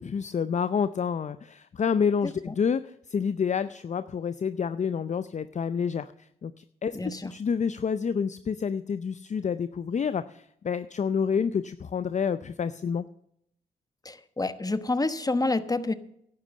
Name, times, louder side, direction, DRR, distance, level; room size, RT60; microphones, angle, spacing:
voice 1, 0.0-13.1, left 6 dB, 40° left, 13 dB, 0.5 m, -29 dB
voice 2, 6.9-7.3 14.0-15.9, left 2 dB, 20° left, 12 dB, 1.1 m, -28 dB
11.0 x 8.7 x 7.5 m, 0.74 s
supercardioid pair, 45°, 19 cm